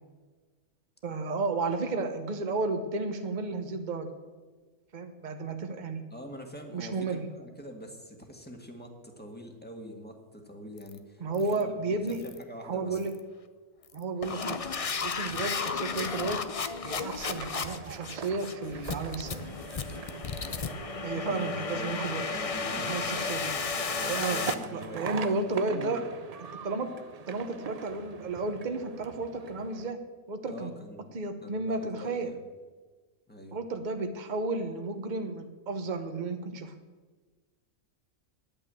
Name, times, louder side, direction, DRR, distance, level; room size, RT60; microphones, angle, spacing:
voice 1, 1.0-4.1 4.9-6.0 6.7-7.3 11.2-12.2 12.6-13.1 13.9-14.6 15.0-16.5 16.8-19.4 21.0-22.3 22.8-23.5 24.1-24.4 24.7-26.0 26.6-26.9 27.3-30.0 30.3-30.7 31.1-32.3 33.5-36.7, right 3 dB, 35° right, 6 dB, 1.1 m, -32 dB
voice 2, 6.1-13.0 21.3-22.0 22.3-23.4 23.8-25.1 25.6-26.0 30.5-31.1 31.4-32.4 33.3-33.6, equal, 5° left, 2 dB, 1.6 m, -44 dB
sound 1, 10.8-11.0 11.3-11.6 12.1-12.4 12.9-13.2 13.8-24.5, left 5 dB, 45° left, 0.4 m, -34 dB
sound 2, 17.2-29.9, right 6 dB, 80° right, 0.3 m, -42 dB
10.5 x 9.0 x 7.6 m, 1.4 s
omnidirectional pair, 1.5 m